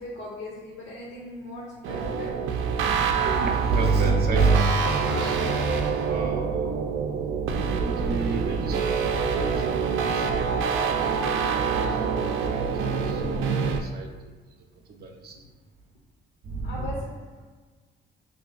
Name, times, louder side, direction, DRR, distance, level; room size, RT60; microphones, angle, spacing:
voice 1, 0.0-2.3 13.2-13.3 16.6-17.4, left 1 dB, 75° left, -6 dB, 1.0 m, -38 dB
sound 1, 1.8-13.8, right 6 dB, 90° right, 0.5 m, -26 dB
voice 2, 3.3-5.3 6.1-6.6 7.8-10.5 11.3-13.4 13.7-14.1 15.0-15.3 16.5-16.9, right 3 dB, 50° right, -1 dB, 0.7 m, -28 dB
5.0 x 3.1 x 2.4 m, 1.4 s
cardioid pair, 90°, 20 cm